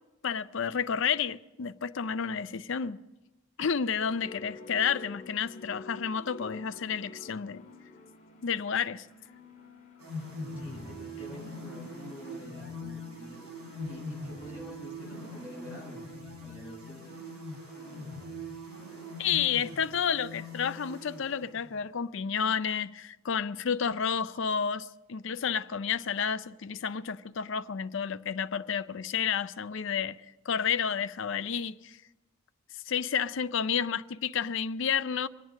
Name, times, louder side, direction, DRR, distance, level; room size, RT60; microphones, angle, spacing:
voice 1, 0.2-3.0 3.6-7.6 8.4-9.1 19.2-30.2 30.5-32.0 32.9-35.3, left 7 dB, 55° left, 0.5 m, -30 dB
sound 1, 4.0-17.3, left 3 dB, 35° left, 2.0 m, -51 dB
sound 2, 10.0-21.9, left 1 dB, 85° right, 5.5 m, -42 dB
voice 2, 10.5-13.4 13.8-16.1 16.4-17.1, equal, 10° right, 4.8 m, -47 dB
24.5 x 9.1 x 6.4 m
head